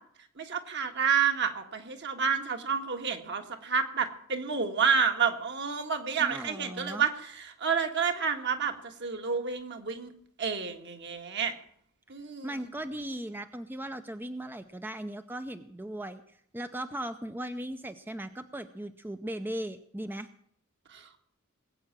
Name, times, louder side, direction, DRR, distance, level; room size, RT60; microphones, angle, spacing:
voice 1, 0.4-7.1 7.6-10.1 10.4-11.5 12.1-12.5 20.9-21.2, right 6 dB, 55° right, 6 dB, 1.7 m, -29 dB
voice 2, 6.2-7.0 12.4-20.3, right 1 dB, 10° right, 9 dB, 0.5 m, -38 dB
20.0 x 8.7 x 7.4 m, 0.67 s
head